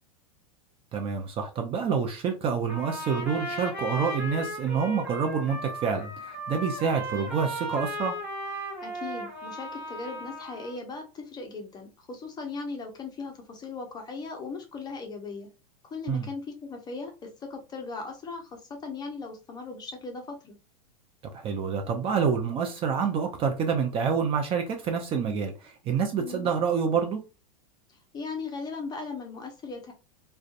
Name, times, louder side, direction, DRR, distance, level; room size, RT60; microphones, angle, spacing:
voice 1, 0.9-8.2 16.1-16.2 21.3-27.2, right 6 dB, 30° right, 0.5 m, -27 dB
Trumpet, 2.7-10.8, equal, 10° right, 1.4 m, -36 dB
voice 2, 8.8-15.5 15.8-20.6 26.2-26.5 27.9-29.9, left 4 dB, 20° left, 0.7 m, -38 dB
2.5 x 2.3 x 2.4 m
hypercardioid pair, 110°, 19 cm